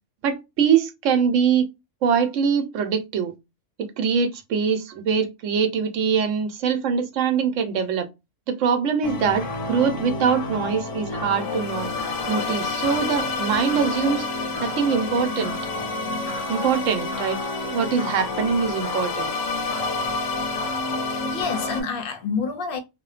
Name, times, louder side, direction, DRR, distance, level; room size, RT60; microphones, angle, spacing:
voice 1, 0.2-1.6 2.0-3.3 3.8-8.1 8.5-11.9 12.3-14.3 14.6-15.6 16.5-17.4 17.6-19.3, right 6 dB, 80° right, 1.0 m, -23 dB
sound 1, 9.0-21.8, left 3 dB, 85° left, 1.0 m, -28 dB
voice 2, 21.0-22.8, left 5 dB, 55° left, 0.7 m, -28 dB
2.6 x 2.1 x 2.3 m
omnidirectional pair, 1.3 m